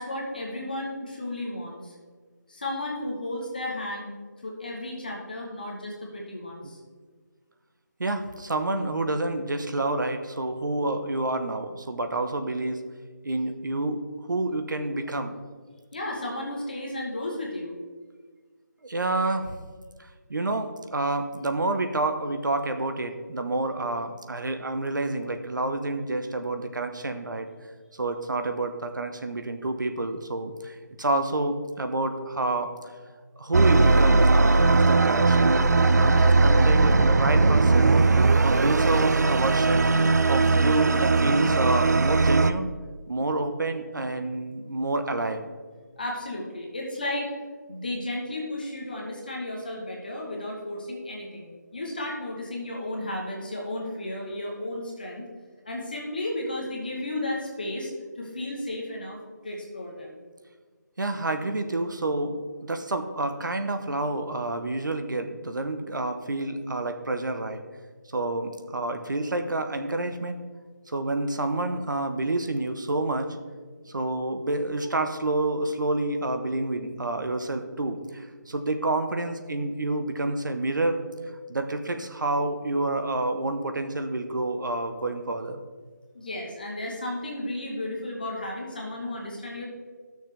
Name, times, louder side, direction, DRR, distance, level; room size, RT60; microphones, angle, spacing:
voice 1, 0.0-1.9 2.5-4.1 4.4-6.8 15.9-17.7 46.0-47.3 47.7-55.3 55.7-57.9 58.2-59.2 59.4-60.2 86.1-89.7, left 1 dB, 30° left, -2 dB, 1.0 m, -33 dB
voice 2, 8.0-12.8 13.2-14.0 14.3-15.3 18.8-19.5 20.3-27.5 28.0-32.7 33.4-38.0 38.4-39.9 40.3-42.7 43.1-45.5 61.0-67.6 68.1-70.4 70.9-73.4 73.9-81.0 81.5-85.6, right 2 dB, 85° right, 7 dB, 1.0 m, -28 dB
sound 1, 33.5-42.5, right 3 dB, 65° right, 0.4 m, -19 dB
12.0 x 6.5 x 3.3 m, 1.5 s
figure-of-eight pair, 180°, 10 cm